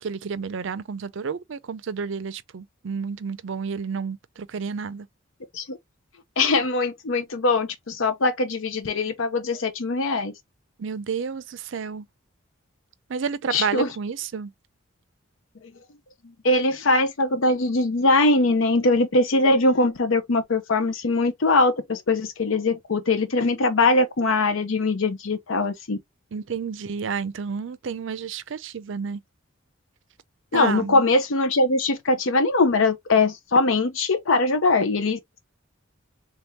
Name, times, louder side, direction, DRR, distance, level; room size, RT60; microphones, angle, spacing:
voice 1, 0.0-5.1 10.8-12.1 13.1-14.5 26.3-29.2 30.5-31.0, right 6 dB, 65° right, 0.5 m, -30 dB
voice 2, 6.4-10.3 13.5-13.9 16.4-26.0 30.5-35.4, left 2 dB, 75° left, 0.7 m, -21 dB
3.5 x 3.4 x 2.8 m
head